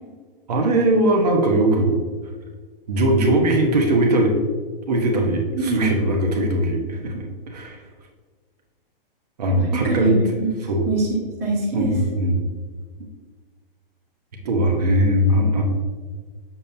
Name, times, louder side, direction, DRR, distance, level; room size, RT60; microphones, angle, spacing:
voice 1, 0.5-2.0 2.9-4.3 4.9-7.8 9.4-10.2 10.6-10.9 11.7-12.4 14.4-15.6, right 1 dB, 45° right, 1 dB, 1.1 m, -20 dB
voice 2, 5.6-5.9 9.7-10.5 10.8-11.9, right 2 dB, 10° right, -8 dB, 1.0 m, -24 dB
7.4 x 7.0 x 2.8 m, 1.5 s
hypercardioid pair, 180°, 29 cm